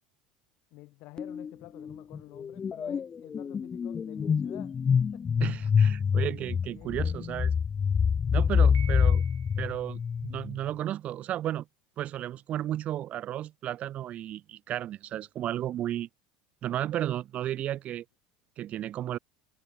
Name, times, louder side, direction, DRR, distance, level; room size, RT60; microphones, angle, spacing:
voice 1, 0.7-4.8 5.1-5.3 6.3-6.4 6.7-7.0, left 22 dB, 65° left, 5.9 m, -49 dB
sound 1, 1.2-1.5 1.8-10.6, left 6 dB, 30° left, 0.4 m, -26 dB
voice 2, 5.4-7.5 8.3-9.2 9.6-11.6 12.0-16.1 16.6-18.0 18.6-19.2, right 12 dB, 45° right, 0.6 m, -33 dB
Piano, 8.7-9.9, right 11 dB, 90° right, 1.7 m, -48 dB
hypercardioid pair, 85°, 3 cm